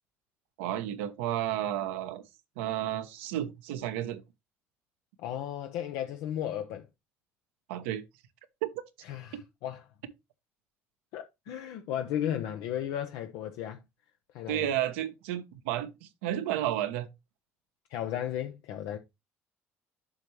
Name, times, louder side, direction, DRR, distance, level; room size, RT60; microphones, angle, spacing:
voice 1, 0.6-2.2 2.6-4.2 7.7-8.0 8.6-8.7 14.5-17.1, right 12 dB, 90° right, 0.9 m, -32 dB
voice 2, 5.2-6.9 9.0-9.8 11.1-13.8 14.3-14.7 17.9-19.0, left 10 dB, 80° left, 0.7 m, -35 dB
7.3 x 5.5 x 3.1 m
supercardioid pair, 70°, 6 cm